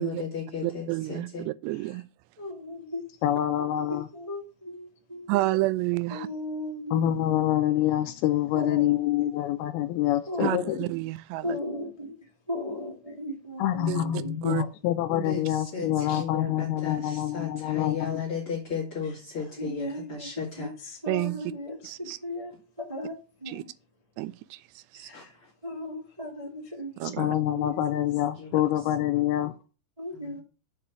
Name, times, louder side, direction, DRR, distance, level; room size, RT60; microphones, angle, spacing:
voice 1, 0.0-1.5 15.1-20.7 25.1-25.5 28.4-28.5 30.1-30.4, left 6 dB, 40° left, 2.2 m, -35 dB
voice 2, 0.6-2.0 5.3-6.3 10.4-11.6 13.9-14.0 14.4-14.6 21.1-21.4 21.8-22.2 23.5-23.6 24.2-25.1 27.0-27.3, right 20 dB, 90° right, 2.8 m, -30 dB
voice 3, 2.4-3.1 3.9-5.5 6.1-7.0 8.5-9.3 10.3-10.7 11.4-12.2 12.5-14.7 16.1-16.2 19.4-23.7 24.9-25.3 25.6-27.1 27.5-27.8 30.0-30.4, left 1 dB, 75° right, 0.3 m, -37 dB
voice 4, 3.2-4.1 6.9-10.9 13.6-18.2 27.0-29.5, left 12 dB, 85° left, 2.2 m, -26 dB
6.8 x 5.3 x 6.0 m
omnidirectional pair, 4.9 m